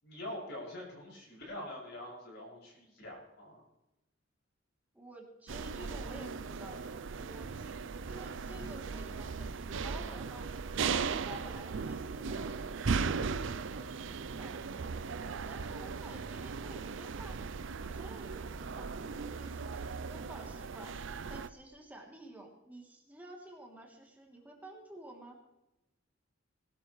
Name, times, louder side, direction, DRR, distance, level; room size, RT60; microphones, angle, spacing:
voice 1, 0.0-3.6, left 1 dB, 60° left, -4 dB, 6.5 m, -44 dB
voice 2, 4.9-6.8 7.1-7.7 8.0-10.5 11.1-17.4 17.8-21.0 21.3-25.4, right 1 dB, 10° right, -1 dB, 2.9 m, -51 dB
sound 1, 5.5-21.5, right 5 dB, 65° right, 0.5 m, -37 dB
20.5 x 12.0 x 3.2 m, 0.95 s
head